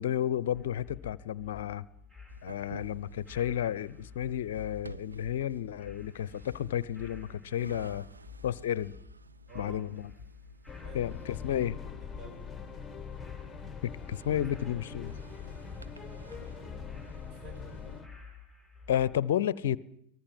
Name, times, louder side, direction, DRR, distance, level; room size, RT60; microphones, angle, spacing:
voice 1, 0.0-1.8 2.4-8.1 8.4-8.9 9.5-10.1 10.9-11.8 13.8-15.1 18.9-19.8, left 10 dB, 55° left, 0.8 m, -32 dB
sound 1, 0.5-19.2, left 5 dB, 5° right, 5.2 m, -51 dB
sound 2, 2.3-18.0, right 4 dB, 75° right, 1.0 m, -53 dB
voice 2, 9.5-9.9 10.8-11.2 11.4-12.5 14.6-14.9 16.0-16.8 17.2-18.0, right 4 dB, 35° right, 6.8 m, -51 dB
sound 3, 10.7-18.1, left 6 dB, 10° left, 2.1 m, -43 dB
23.5 x 19.0 x 7.6 m
figure-of-eight pair, 90°, 0 cm